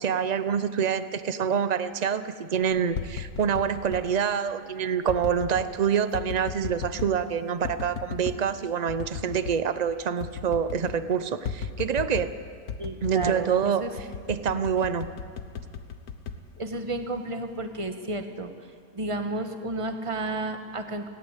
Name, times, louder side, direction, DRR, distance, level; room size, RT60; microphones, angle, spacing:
voice 1, 0.0-12.4 13.0-13.8 14.3-15.1, right 7 dB, 60° right, 12 dB, 0.4 m, -26 dB
sound 1, 2.7-4.1 5.1-5.7 6.1-7.2 7.6-8.4 8.9-9.6 9.9-10.0 10.2-11.0 11.4-12.4 12.7-13.4 14.0-17.1 17.5-17.9, left 6 dB, 65° left, 1.5 m, -36 dB
voice 2, 12.8-13.9 16.6-18.5 18.9-21.1, right 2 dB, 20° right, 6 dB, 1.2 m, -32 dB
19.5 x 17.0 x 8.2 m, 2.1 s
omnidirectional pair, 1.7 m